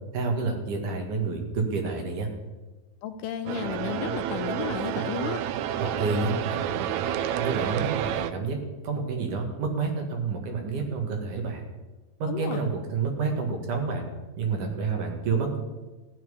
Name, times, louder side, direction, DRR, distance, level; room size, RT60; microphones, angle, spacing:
voice 1, 0.1-2.3 5.8-6.9 7.4-8.6 8.8-11.7 12.2-14.0 14.4-15.6, right 4 dB, 65° right, 2 dB, 3.4 m, -29 dB
voice 2, 3.0-5.4 12.3-12.6, left 9 dB, 80° left, 8 dB, 2.0 m, -33 dB
sound 1, 3.5-8.3, right 10 dB, 80° right, 1.7 m, -29 dB
15.0 x 6.0 x 9.9 m, 1.2 s
omnidirectional pair, 4.0 m